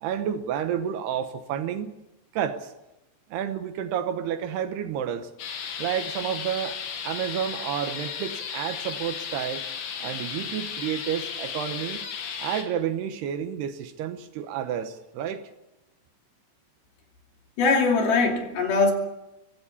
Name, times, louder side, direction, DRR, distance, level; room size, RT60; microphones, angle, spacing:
voice 1, 0.0-1.9 2.3-2.7 3.3-5.3 5.8-9.7 10.0-12.1 12.4-15.4, right 9 dB, 75° right, 2.9 m, -30 dB
sound 1, 5.4-12.6, left 7 dB, 85° left, 4.5 m, -35 dB
voice 2, 17.6-18.9, left 4 dB, 60° left, 4.4 m, -21 dB
25.0 x 16.5 x 7.1 m
omnidirectional pair, 5.1 m